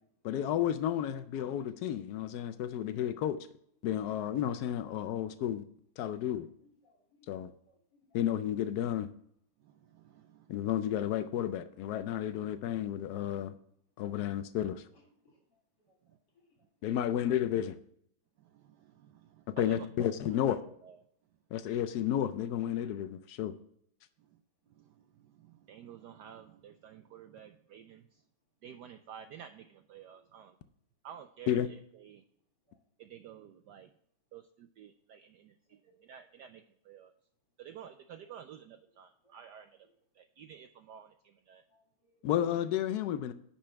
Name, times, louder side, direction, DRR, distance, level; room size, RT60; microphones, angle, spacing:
voice 1, 0.2-3.4 3.8-5.6 6.0-6.5 7.3-7.5 8.1-9.1 10.5-13.5 14.0-14.9 16.8-17.8 19.5-20.6 21.5-23.5 31.5-31.7 42.2-43.3, left 10 dB, 90° left, 0.8 m, -32 dB
voice 2, 2.4-2.8 6.6-7.3 7.7-7.8 8.1-8.2 15.2-15.3 15.9-16.0 32.7-32.8 35.8-36.0 39.2-39.4 41.7-42.1, left 2 dB, 55° left, 3.3 m, -68 dB
voice 3, 9.6-10.6 14.3-14.4 16.1-16.2 18.4-21.0 24.2-24.4 24.7-28.2 28.6-30.6 31.0-32.2 33.0-33.9 34.3-37.1 37.6-39.9 40.1-41.6, right 9 dB, 80° right, 0.9 m, -52 dB
10.5 x 4.4 x 5.7 m
omnidirectional pair, 2.3 m